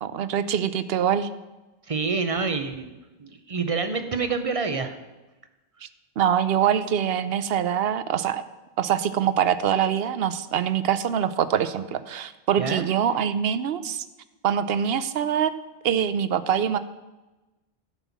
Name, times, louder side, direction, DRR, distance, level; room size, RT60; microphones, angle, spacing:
voice 1, 0.0-1.3 6.2-8.4 8.8-14.0 14.4-15.5 15.8-16.8, right 9 dB, 75° right, 13 dB, 0.8 m, -24 dB
voice 2, 1.9-4.9 12.6-12.9, right 4 dB, 40° right, 8 dB, 0.8 m, -27 dB
11.0 x 5.6 x 7.1 m, 1.1 s
omnidirectional pair, 1.0 m